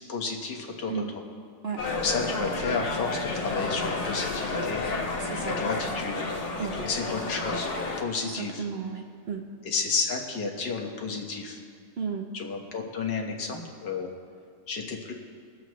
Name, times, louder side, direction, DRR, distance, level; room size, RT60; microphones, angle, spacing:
voice 1, 0.1-1.0 2.0-4.8 5.5-6.2 6.7-7.7 8.0-8.6 9.6-11.6 12.3-14.1 14.7-15.1, left 4 dB, 80° left, 1 dB, 2.0 m, -31 dB
sound 1, 1.8-8.0, left 3 dB, 65° left, 2.2 m, -31 dB
Bowed string instrument, 2.1-7.1, left 4 dB, 40° left, 1.0 m, -44 dB
voice 2, 5.2-5.6 6.6-6.7 8.2-9.4 12.0-12.3, right 6 dB, 55° right, 3 dB, 0.7 m, -33 dB
23.0 x 7.6 x 3.1 m, 2.1 s
omnidirectional pair, 1.8 m